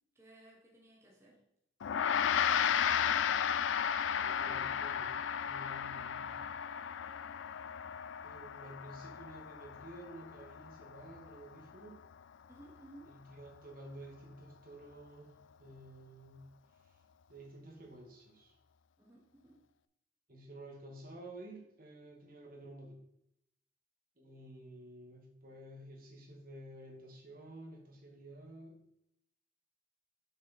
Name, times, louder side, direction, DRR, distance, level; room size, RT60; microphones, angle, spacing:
voice 1, 0.1-1.4 12.5-13.2 19.0-19.6, right 1 dB, 15° right, -3 dB, 1.3 m, -57 dB
Gong, 1.8-11.4, left 8 dB, 80° left, 0.4 m, -34 dB
voice 2, 4.2-5.1 5.4-6.4 8.2-12.0 13.0-15.3 15.6-16.5 16.8-17.0 17.3-18.5 20.3-23.0 24.2-28.9, right 1 dB, 50° right, 0 dB, 1.8 m, -51 dB
6.5 x 6.4 x 4.3 m, 0.77 s
head